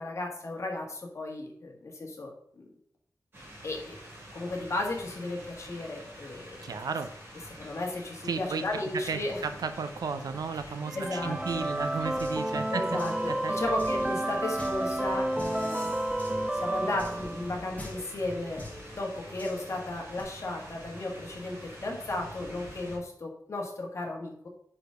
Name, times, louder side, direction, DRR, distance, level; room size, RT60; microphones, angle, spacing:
voice 1, 0.0-2.7 3.6-4.0 4.3-6.9 7.6-9.4 10.5-10.6 10.9-11.6 12.7-15.9 16.5-24.5, left 2 dB, 50° left, 1 dB, 1.5 m, -35 dB
sound 1, 3.3-23.0, right 1 dB, 35° right, 2.7 m, -47 dB
voice 2, 6.6-7.1 8.3-8.6 8.9-13.5, right 5 dB, 85° right, 10 dB, 0.6 m, -34 dB
sound 2, 10.9-17.8, right 1 dB, 10° right, 0.4 m, -31 dB
sound 3, 11.5-20.2, left 1 dB, 25° left, 1.4 m, -47 dB
4.9 x 4.9 x 5.1 m, 0.69 s
wide cardioid pair, 140°, 6 cm